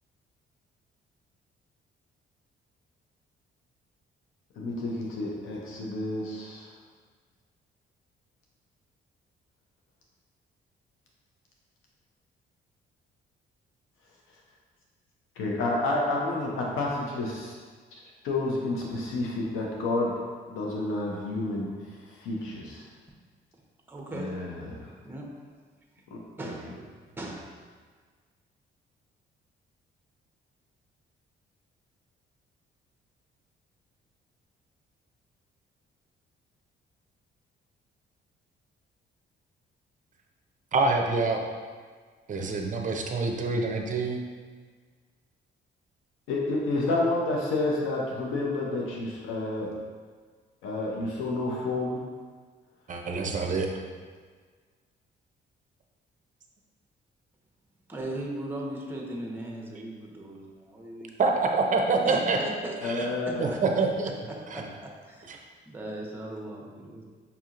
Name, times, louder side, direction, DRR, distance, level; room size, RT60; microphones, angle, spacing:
voice 1, 4.6-6.7 15.4-17.5 17.9-20.1 20.5-21.7 22.2-22.8 24.1-24.9 26.1-26.2 46.3-49.7 50.6-52.0 62.8-63.5, left 2 dB, 85° left, -2 dB, 0.6 m, -30 dB
voice 2, 23.9-24.7 25.0-25.3 26.4-26.9 27.2-27.4 57.9-61.2 62.0-63.8 64.3-64.7 65.0-65.3 65.7-67.0, right 1 dB, 10° right, -2 dB, 0.8 m, -38 dB
voice 3, 40.7-41.4 42.3-44.2 52.9-53.7 61.2-62.4 63.0-63.1 63.4-64.1 64.5-64.6 65.3-65.4, right 3 dB, 40° right, 2 dB, 0.5 m, -26 dB
5.4 x 2.8 x 2.5 m, 1.6 s
cardioid pair, 90°, 20 cm